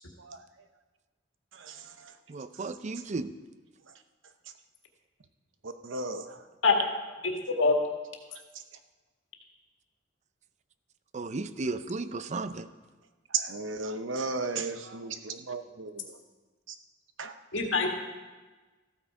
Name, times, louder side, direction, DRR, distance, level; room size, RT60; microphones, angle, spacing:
voice 1, 1.5-2.1 5.6-6.4 8.3-8.4 13.3-16.2 16.7-16.8 17.2-17.4, right 4 dB, 80° right, 8 dB, 0.8 m, -35 dB
voice 2, 2.3-3.3 11.1-12.7, right 3 dB, 40° right, 13 dB, 0.5 m, -34 dB
voice 3, 7.2-7.8 17.5-17.9, left 4 dB, 75° left, 2 dB, 1.8 m, -24 dB
14.5 x 8.7 x 4.9 m, 1.3 s
head